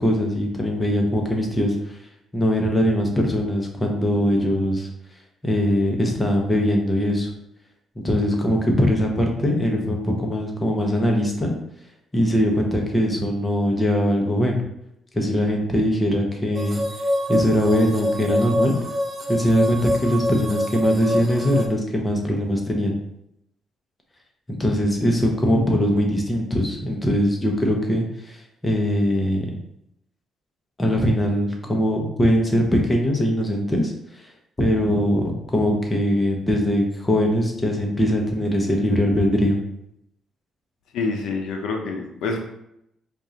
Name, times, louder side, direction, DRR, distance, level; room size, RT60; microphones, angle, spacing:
voice 1, 0.0-1.9 2.3-4.9 5.4-7.3 8.0-11.5 12.1-14.6 15.1-16.8 17.3-18.8 19.3-23.0 24.5-29.6 30.8-33.9 34.6-39.6, equal, 15° left, 1 dB, 0.9 m, -21 dB
sound 1, 16.5-21.7, left 1 dB, 20° right, 0.6 m, -25 dB
voice 2, 40.9-42.4, left 3 dB, 85° left, 2 dB, 0.5 m, -26 dB
4.6 x 2.5 x 2.8 m, 0.78 s
cardioid pair, 90°, 0 cm